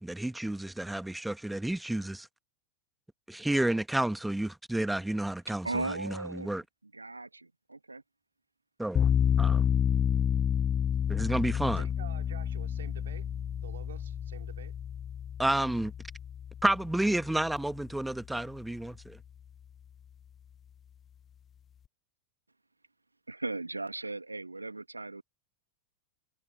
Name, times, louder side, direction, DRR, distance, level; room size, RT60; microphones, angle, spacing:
voice 1, 0.0-2.3 3.3-6.6 8.8-9.1 9.4-9.7 11.1-11.8 15.4-15.9 16.6-19.2, right 1 dB, 5° right, 1.6 m, -31 dB
voice 2, 5.6-6.5 6.9-8.0 23.3-25.2, right 2 dB, 80° right, 1.7 m, -37 dB
sound 1, 8.9-17.8, left 9 dB, 25° left, 0.8 m, -30 dB
voice 3, 11.8-13.3 13.6-14.7, right 10 dB, 60° right, 4.0 m, -48 dB
figure-of-eight pair, 90°, 0 cm